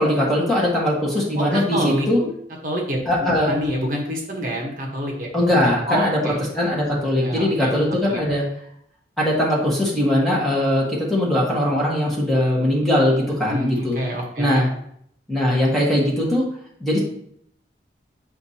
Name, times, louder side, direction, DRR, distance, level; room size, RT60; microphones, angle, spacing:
voice 1, 0.0-2.2 3.0-3.5 5.3-8.4 9.2-14.0 14.4-14.7 15.3-16.4 16.8-17.0, left 1 dB, ahead, -5 dB, 1.4 m, -20 dB
voice 2, 1.4-2.3 2.6-5.3 5.9-6.4 7.2-7.7 8.1-8.2 13.4-14.6, equal, 50° right, -1 dB, 1.2 m, -27 dB
8.1 x 4.3 x 2.8 m, 0.68 s
head